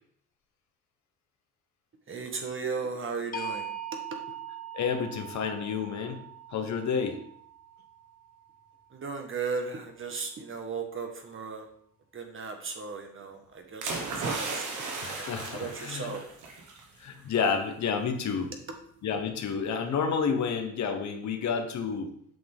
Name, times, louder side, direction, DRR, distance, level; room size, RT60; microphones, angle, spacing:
voice 1, 2.1-3.7 8.9-11.7 12.1-16.2, right 5 dB, 40° right, 4 dB, 1.5 m, -36 dB
sound 1, 3.3-9.3, right 5 dB, 30° left, 1.4 m, -42 dB
voice 2, 4.7-6.2 6.5-7.2 15.0-16.1 17.0-18.5 19.0-22.1, left 6 dB, 65° left, 5 dB, 1.3 m, -30 dB
sound 2, 13.8-16.8 17.2-17.4, right 3 dB, 85° right, 1.7 m, -35 dB
7.6 x 5.9 x 3.6 m, 0.66 s
cardioid pair, 90°, 30 cm